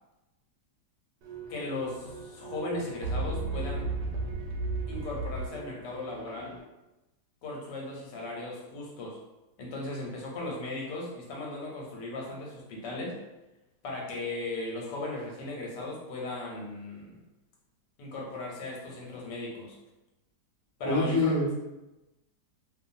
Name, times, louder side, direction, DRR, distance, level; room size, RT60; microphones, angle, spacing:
sound 1, 1.2-6.6, right 3 dB, 85° right, 1.2 m, -35 dB
voice 1, 1.5-3.9 4.9-6.5 7.4-9.2 9.6-13.2 13.8-17.1 18.0-19.8 20.8-21.4, left 2 dB, 85° left, -2 dB, 1.4 m, -37 dB
voice 2, 20.8-21.5, left 2 dB, 45° left, -11 dB, 0.4 m, -25 dB
2.7 x 2.5 x 2.5 m, 1.0 s
omnidirectional pair, 1.8 m